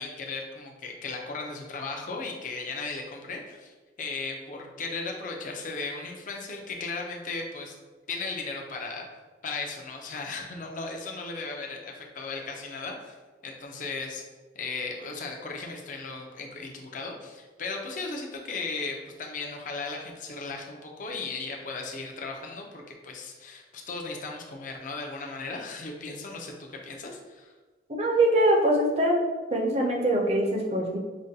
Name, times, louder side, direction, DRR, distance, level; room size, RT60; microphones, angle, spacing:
voice 1, 0.0-7.7 8.1-9.1 9.4-13.2 13.4-14.2 14.5-27.5, left 3 dB, 45° left, 1 dB, 0.5 m, -36 dB
voice 2, 27.9-29.2 29.5-31.0, right 1 dB, 35° right, 0 dB, 0.5 m, -23 dB
5.0 x 2.2 x 2.7 m, 1.3 s
head